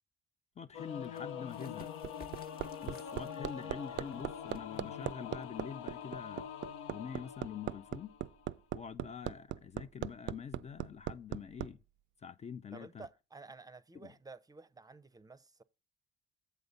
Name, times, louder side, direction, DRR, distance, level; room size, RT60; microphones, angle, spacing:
voice 1, 0.6-1.9 2.8-6.5 6.9-8.2 8.7-11.8 12.2-13.0 14.0-14.1, left 7 dB, 35° left, 0.3 m, -45 dB
Singing / Musical instrument, 0.7-8.5, left 8 dB, 85° left, 0.6 m, -45 dB
sound 1, 0.9-6.3, left 4 dB, 50° left, 1.0 m, -60 dB
Hammer, 1.6-11.7 13.0-13.1, right 13 dB, 65° right, 0.4 m, -39 dB
voice 2, 12.7-15.6, right 4 dB, 20° right, 0.6 m, -52 dB
8.0 x 4.0 x 6.7 m
cardioid pair, 90°, 20 cm